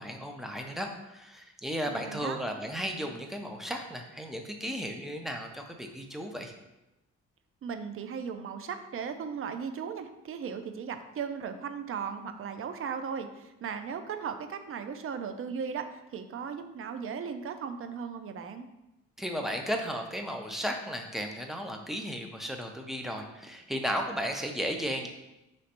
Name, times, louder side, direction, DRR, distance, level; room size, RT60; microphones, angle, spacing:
voice 1, 0.0-6.5 19.2-25.1, equal, ahead, 3 dB, 0.6 m, -35 dB
voice 2, 1.9-2.4 7.6-18.7, right 6 dB, 45° right, 8 dB, 0.5 m, -37 dB
5.1 x 3.1 x 2.9 m, 0.97 s
cardioid pair, 90°, 30 cm